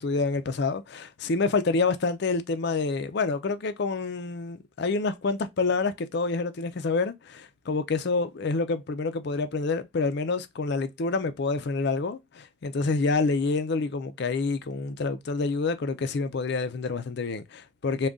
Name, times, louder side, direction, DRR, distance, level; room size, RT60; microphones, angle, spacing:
voice 1, 0.0-18.1, left 4 dB, 55° left, 0.4 m, -27 dB
3.6 x 2.3 x 3.8 m
head